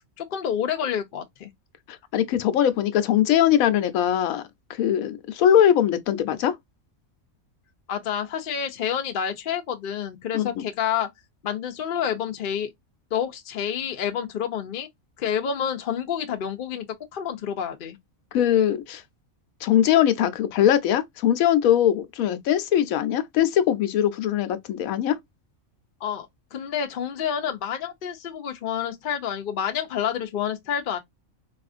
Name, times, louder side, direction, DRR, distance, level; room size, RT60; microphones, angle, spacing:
voice 1, 0.2-1.5 7.9-11.1 11.4-12.7 13.1-14.9 15.2-16.9 17.1-18.0 26.0-31.0, left 8 dB, 55° left, 0.6 m, -28 dB
voice 2, 1.9-4.4 4.7-6.5 10.3-10.5 18.3-19.0 19.6-25.2, left 10 dB, 90° left, 1.0 m, -21 dB
4.2 x 2.4 x 2.4 m
omnidirectional pair, 1.4 m